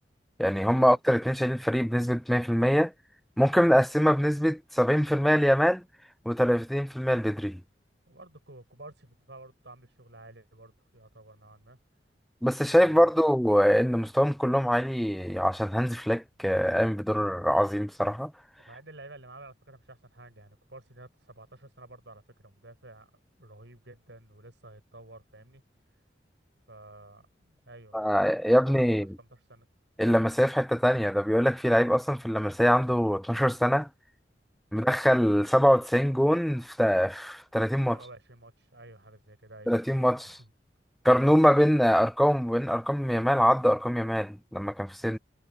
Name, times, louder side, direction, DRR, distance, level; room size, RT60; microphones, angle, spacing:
voice 1, 0.4-2.9 3.4-5.8 6.3-7.6 12.4-18.3 27.9-29.1 30.0-33.9 34.7-38.0 39.7-40.2 41.0-45.2, equal, ahead, 0.4 m, -23 dB
voice 2, 8.1-11.8 12.6-13.1 17.1-17.4 18.6-23.1 23.4-26.0 26.7-29.7 31.9-32.1 37.8-39.7 40.0-40.5 45.1-45.2, right 2 dB, 85° right, 6.8 m, -51 dB
head